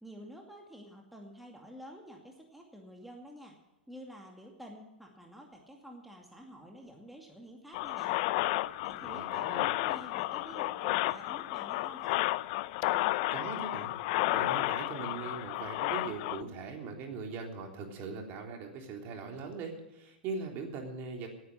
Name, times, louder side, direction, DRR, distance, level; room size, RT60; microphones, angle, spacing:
voice 1, 0.0-3.6 3.9-8.2 8.8-12.2, equal, ahead, 0 dB, 2.3 m, -50 dB
sound 1, 7.7-16.4, left 18 dB, 50° left, 0.5 m, -32 dB
voice 2, 9.0-9.7 13.3-13.9 14.3-21.3, right 4 dB, 40° right, 2 dB, 3.5 m, -40 dB
17.5 x 9.6 x 6.3 m, 0.99 s
hypercardioid pair, 110°, 5 cm